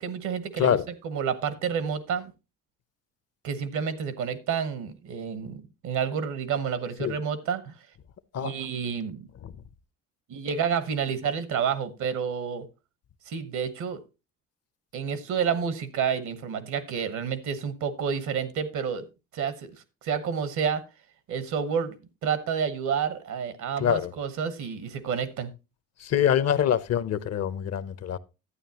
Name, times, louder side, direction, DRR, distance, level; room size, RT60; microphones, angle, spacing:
voice 1, 0.0-0.8 1.0-2.3 3.4-7.7 8.4-9.3 10.3-12.6 13.3-14.0 14.9-19.0 19.3-19.7 20.0-20.8 21.3-22.0 22.2-25.5, right 7 dB, 80° right, 1.2 m, -29 dB
voice 2, 23.8-24.1 26.0-28.2, left 9 dB, 55° left, 0.7 m, -24 dB
11.0 x 8.9 x 2.9 m
cardioid pair, 90°, 30 cm